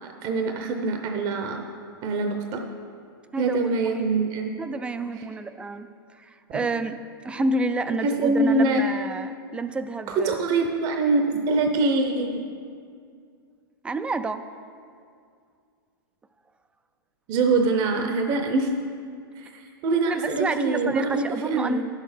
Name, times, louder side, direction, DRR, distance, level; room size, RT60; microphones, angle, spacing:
voice 1, 0.2-1.6 2.0-2.6 3.4-4.5 5.2-5.3 6.5-6.7 7.4-7.5 7.9-8.8 10.1-12.4 17.3-18.7 19.4-21.8, right 3 dB, 35° right, 4 dB, 0.7 m, -24 dB
voice 2, 3.3-4.0 4.6-5.9 6.2-7.0 7.2-10.4 13.8-14.4 20.1-21.8, right 3 dB, 10° right, 10 dB, 0.3 m, -29 dB
10.5 x 6.5 x 5.0 m, 2.3 s
hypercardioid pair, 130°, 13 cm